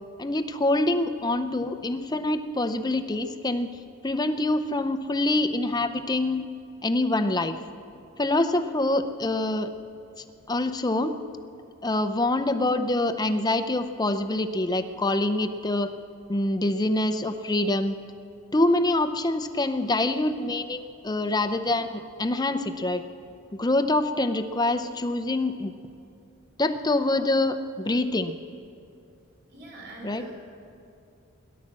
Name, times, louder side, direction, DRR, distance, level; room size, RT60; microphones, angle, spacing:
voice 1, 0.2-3.7 4.0-6.4 6.8-7.6 8.2-9.7 10.2-11.2 11.8-15.9 16.3-18.0 18.5-23.0 23.6-25.7 26.6-28.4 30.0-30.2, left 2 dB, 20° left, 9 dB, 0.6 m, -25 dB
voice 2, 29.5-30.3, right 1 dB, 45° right, -2 dB, 3.4 m, -43 dB
17.0 x 11.0 x 7.5 m, 2.5 s
head